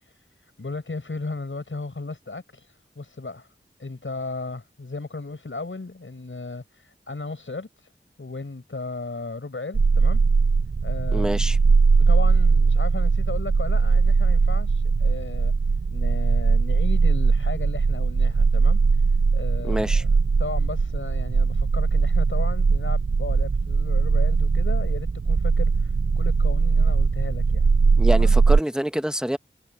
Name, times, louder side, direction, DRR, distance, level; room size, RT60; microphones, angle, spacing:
voice 1, 0.0-3.5 3.8-7.9 8.2-10.2 10.8-11.5 12.1-15.5 15.9-18.8 19.3-20.1 20.4-27.7 28.1-28.3, left 3 dB, 85° left, 5.9 m, -35 dB
sound 1, 9.7-28.6, right 4 dB, 60° right, 0.6 m, -20 dB
voice 2, 11.1-11.6 19.6-20.0 28.0-29.4, equal, 5° right, 1.1 m, -26 dB
wide cardioid pair, 45°, 20 cm